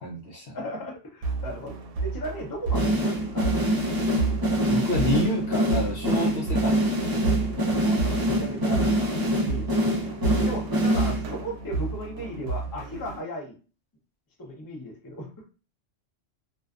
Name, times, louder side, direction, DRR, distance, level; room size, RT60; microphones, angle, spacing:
voice 1, 0.0-0.6 4.7-7.3, left 1 dB, 60° left, -1 dB, 0.8 m, -29 dB
voice 2, 0.5-3.5 7.8-13.6 14.4-15.4, equal, 20° left, -2 dB, 0.6 m, -37 dB
sound 1, 1.2-13.2, right 4 dB, 75° right, 0.9 m, -31 dB
sound 2, 2.7-11.5, equal, 30° right, 0.4 m, -25 dB
2.5 x 2.3 x 2.4 m, 0.34 s
omnidirectional pair, 1.3 m